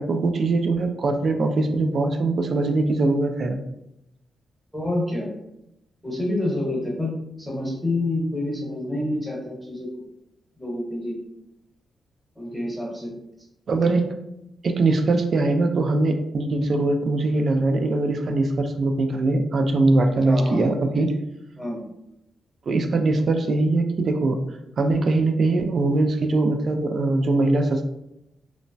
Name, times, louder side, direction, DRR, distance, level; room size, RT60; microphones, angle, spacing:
voice 1, 0.0-3.6 13.7-14.1 14.6-21.1 22.7-24.4 24.8-27.8, right 2 dB, 45° right, 5 dB, 0.3 m, -21 dB
voice 2, 4.7-5.3 6.0-9.9 10.6-11.2 12.4-13.1 20.2-20.6 21.6-21.9, left 1 dB, ahead, -3 dB, 0.9 m, -28 dB
3.0 x 2.1 x 2.5 m, 0.83 s
wide cardioid pair, 130°, 0 cm